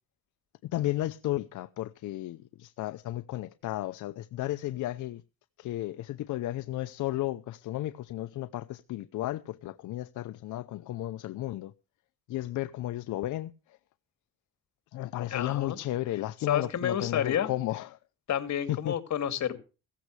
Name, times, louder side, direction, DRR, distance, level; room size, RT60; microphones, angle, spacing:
voice 1, 0.6-5.2 5.6-11.7 12.3-13.8 14.9-18.0 18.7-19.0, left 15 dB, 80° left, 0.8 m, -34 dB
voice 2, 15.3-15.8 16.5-17.5 18.3-19.6, left 9 dB, 65° left, 2.7 m, -30 dB
17.0 x 14.5 x 3.4 m
cardioid pair, 90°, 30 cm